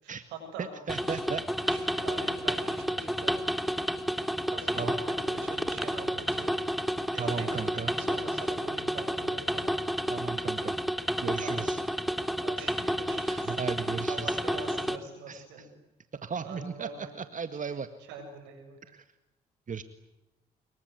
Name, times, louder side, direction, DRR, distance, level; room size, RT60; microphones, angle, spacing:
voice 1, 0.0-0.7 1.1-1.2 1.6-3.4 4.5-6.5 7.1-9.7 11.4-11.7 12.4-13.5 14.1-15.7 16.4-17.1 18.1-18.8, right 3 dB, 90° right, 5 dB, 7.5 m, -43 dB
voice 2, 0.6-1.4 2.7-2.8 4.7-4.9 7.1-8.0 10.1-10.8 11.2-11.8 13.3-14.4 15.3-15.7 16.2-17.9 18.8-19.0 19.7-19.8, right 6 dB, 45° right, 10 dB, 1.9 m, -36 dB
sound 1, 0.9-15.0, equal, ahead, 2.7 m, -31 dB
26.0 x 24.0 x 9.5 m, 1.0 s
supercardioid pair, 50°, 18 cm